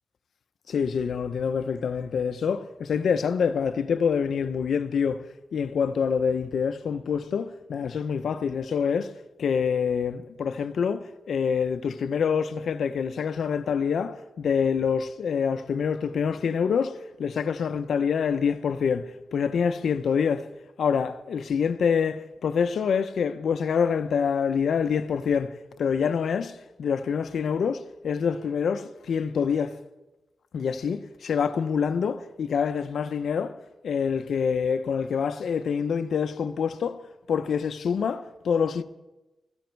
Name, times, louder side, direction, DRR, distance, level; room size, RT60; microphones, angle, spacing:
voice 1, 0.7-5.2 5.5-9.1 9.4-20.5 20.8-25.5 25.8-29.8 30.5-33.6 33.8-37.0 37.3-38.8, left 6 dB, 75° left, 0.8 m, -26 dB
20.5 x 14.5 x 4.6 m
wide cardioid pair, 165°, 0 cm